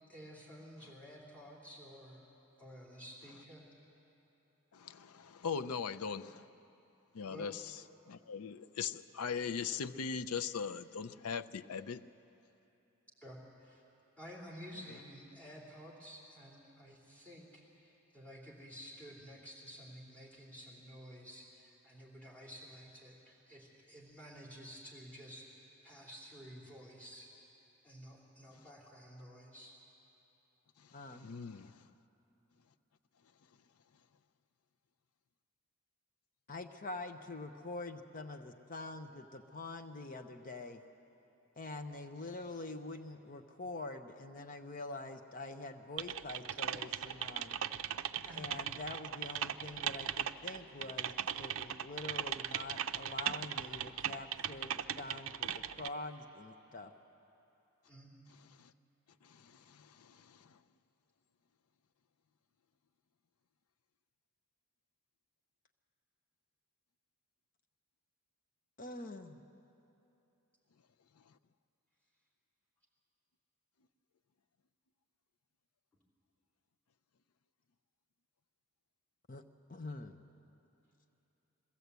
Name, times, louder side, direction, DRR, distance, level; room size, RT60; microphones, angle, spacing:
voice 1, 0.1-2.2 2.6-3.7 7.3-7.6 13.2-13.8 14.2-27.4 27.8-29.7 46.5-46.6 48.2-48.4 57.9-58.2, equal, 5° left, 3.1 m, -52 dB
voice 2, 4.7-6.5 7.1-7.8 8.1-12.0 30.8-31.8 58.6-58.7 59.2-60.6, left 6 dB, 90° left, 0.5 m, -40 dB
voice 3, 30.9-31.3 31.6-31.7 36.5-40.8 41.6-47.6 48.3-56.9 68.8-69.4 79.3-79.4 79.7-80.2, left 2 dB, 40° left, 0.7 m, -45 dB
Typing, 46.0-55.9, right 9 dB, 65° right, 0.5 m, -38 dB
22.0 x 15.5 x 8.1 m
head